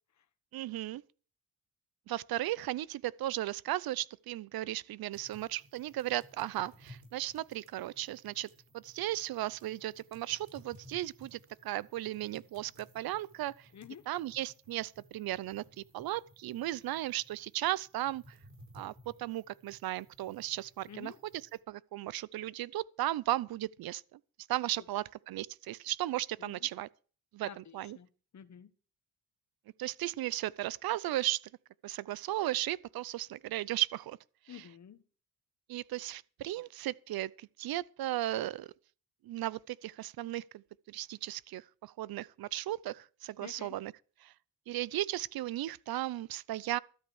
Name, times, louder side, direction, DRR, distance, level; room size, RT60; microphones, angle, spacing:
voice 1, 0.5-1.0 2.1-8.5 8.7-13.7 14.1-18.2 18.7-18.9 19.2-21.1 21.7-24.2 24.5-26.9 27.3-28.0 29.8-31.4 31.8-34.2 34.5-34.7 35.7-38.7 39.2-43.9 44.2-44.3 44.7-46.8, right 15 dB, 75° right, 0.7 m, -36 dB
sound 1, 5.1-21.6, equal, 45° right, 7.1 m, -59 dB
voice 2, 27.4-28.7 34.5-35.0 43.4-43.8, left 9 dB, 50° left, 1.4 m, -49 dB
13.0 x 8.6 x 6.3 m
cardioid pair, 85°, 37 cm